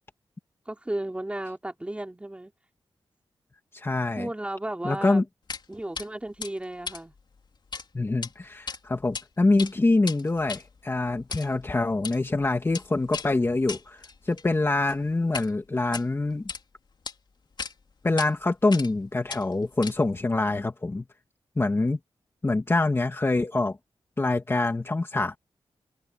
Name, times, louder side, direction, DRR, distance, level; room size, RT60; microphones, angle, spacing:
voice 1, 0.6-2.5 4.1-5.2 5.7-7.1, right 1 dB, 10° right, 3.4 m, -34 dB
voice 2, 3.7-4.3 4.8-5.2 7.9-16.5 18.0-21.0 21.6-22.0 22.4-23.8 24.2-25.4, left 2 dB, 25° left, 2.0 m, -25 dB
sound 1, 5.5-5.7 6.0-6.1 6.4-7.9 8.1-8.3 8.7-9.2 9.5-15.5 15.8-16.6 17.1-17.2 17.6-17.7 18.2-18.3 18.7-19.0 19.3-20.2, left 5 dB, 50° left, 3.8 m, -38 dB
wide cardioid pair, 145°, 10 cm